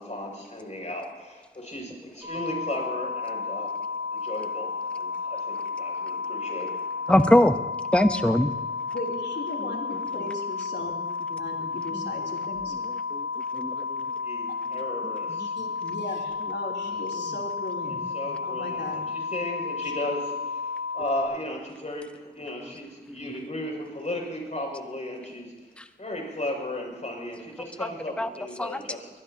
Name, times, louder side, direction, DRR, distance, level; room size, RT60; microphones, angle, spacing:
voice 1, 0.0-3.7 4.1-6.9 14.2-15.4 18.1-25.5 26.0-29.1, left 1 dB, 40° left, -1 dB, 6.5 m, -35 dB
sound 1, 2.2-21.2, left 5 dB, 55° right, 6.8 m, -32 dB
voice 2, 7.1-7.6 7.9-8.5 13.1-13.3 13.5-13.8 23.1-23.2 25.8-25.9 27.8-27.9 28.2-28.3 28.6-28.8, left 1 dB, 5° left, 9 dB, 0.8 m, -21 dB
voice 3, 8.9-11.1 11.4-12.7 15.4-18.0 18.4-19.3 19.8-19.9, left 1 dB, 75° left, -1 dB, 3.3 m, -37 dB
23.0 x 21.0 x 2.9 m, 1.3 s
wide cardioid pair, 60°, 18 cm